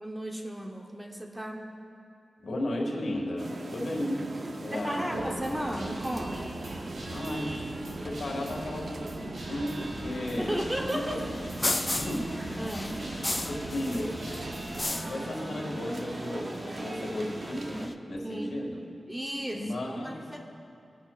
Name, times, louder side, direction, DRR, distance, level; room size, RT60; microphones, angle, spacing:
voice 1, 0.0-1.7 4.7-6.5 10.4-11.3 12.6-13.1 18.2-18.6 19.1-20.4, equal, 10° right, 2 dB, 0.8 m, -35 dB
voice 2, 2.4-4.3 4.6-5.2 7.1-7.8 8.0-11.2 11.9-12.4 13.5-14.2 14.4-14.5 15.0-18.8 19.5-20.2, left 1 dB, 70° left, -1 dB, 1.9 m, -34 dB
sound 1, 3.4-17.9, right 2 dB, 50° right, 0.6 m, -39 dB
Guitar, 5.1-14.8, right 1 dB, 85° right, 2.4 m, -42 dB
sound 2, 9.8-17.9, left 2 dB, 20° left, 0.3 m, -37 dB
19.5 x 10.0 x 2.4 m, 2.5 s
wide cardioid pair, 135°, 0 cm